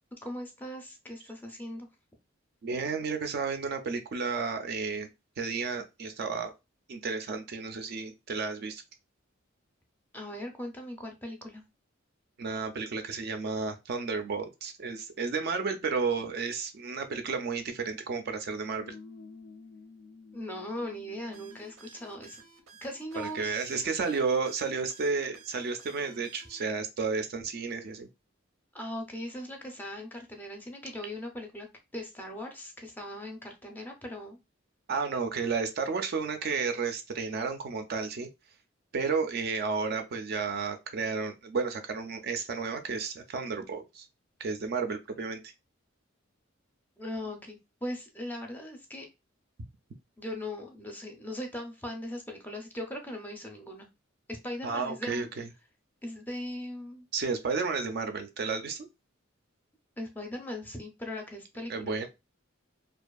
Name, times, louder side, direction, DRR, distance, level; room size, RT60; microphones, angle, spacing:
voice 1, 0.2-1.9 10.1-11.6 20.3-22.4 22.8-23.9 28.7-31.7 31.9-34.4 47.0-49.1 50.2-53.9 54.3-55.3 56.0-57.0 60.0-62.1, left 1 dB, 10° left, 0.5 m, -39 dB
voice 2, 2.6-5.1 5.4-6.5 6.9-8.8 12.4-18.9 23.2-28.1 34.9-38.3 38.9-44.1 44.4-45.5 54.6-55.5 57.1-58.9 61.7-62.1, right 4 dB, 50° right, 0.4 m, -32 dB
sound 1, 18.7-21.8, left 3 dB, 80° left, 0.3 m, -49 dB
sound 2, 21.3-26.6, right 5 dB, 90° right, 0.6 m, -55 dB
2.5 x 2.4 x 2.2 m
head